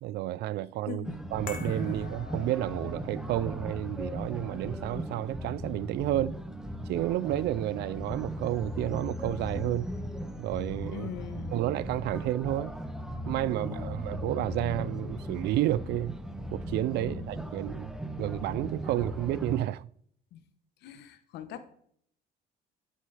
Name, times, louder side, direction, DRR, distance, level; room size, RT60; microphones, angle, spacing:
voice 1, 0.0-1.1 1.3-6.4 6.9-9.9 10.4-11.1 11.5-12.8 13.3-16.2 16.5-19.9, right 14 dB, 75° right, 0.4 m, -31 dB
voice 2, 0.9-1.2 10.9-11.5 13.6-13.9 17.0-17.4 20.3-20.4 20.8-21.7, left 9 dB, 80° left, 1.1 m, -42 dB
sound 1, 1.0-19.6, equal, 5° right, 1.0 m, -37 dB
sound 2, 1.5-7.9 8.1-8.3, left 5 dB, 55° left, 1.5 m, -49 dB
12.5 x 7.6 x 3.4 m
cardioid pair, 110°, 17 cm